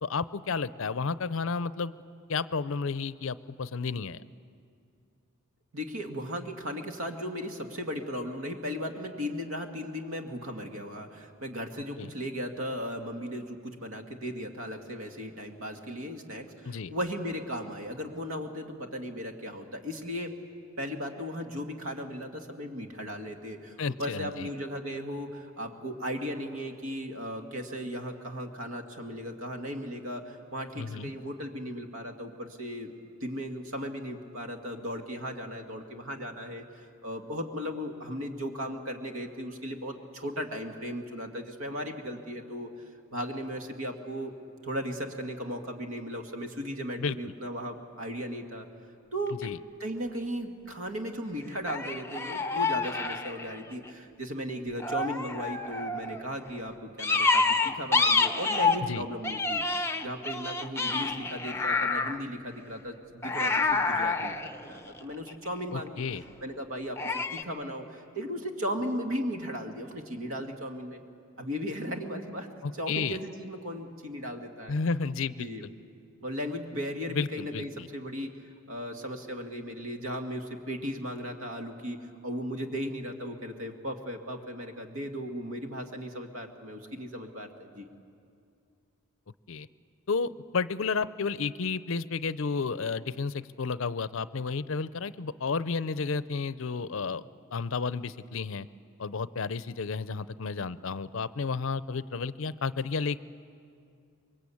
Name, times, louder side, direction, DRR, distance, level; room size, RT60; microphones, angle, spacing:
voice 1, 0.0-1.9 2.3-4.2 12.0-12.1 16.6-16.9 23.8-24.5 30.8-31.1 47.0-47.3 49.4-49.6 58.9-59.0 65.7-66.2 72.6-73.2 74.7-75.5 77.1-77.9 89.5-89.7 90.1-97.2 97.5-98.7 99.0-103.2, left 4 dB, 60° left, 16 dB, 0.6 m, -32 dB
voice 2, 5.7-20.3 20.8-32.9 33.2-42.7 43.1-44.3 44.6-48.7 49.1-49.4 49.8-59.6 60.0-66.0 66.4-71.0 71.4-72.5 72.7-74.7 75.4-75.6 76.2-78.3 78.7-82.0 82.2-87.9, equal, 70° right, 4 dB, 2.1 m, -36 dB
sound 1, 49.3-49.5 51.7-53.9 54.8-56.2 57.0-58.9 59.2-62.2 63.2-65.5 67.0-67.4, left 3 dB, 10° left, 0.7 m, -28 dB
26.0 x 22.5 x 8.6 m, 2.4 s
head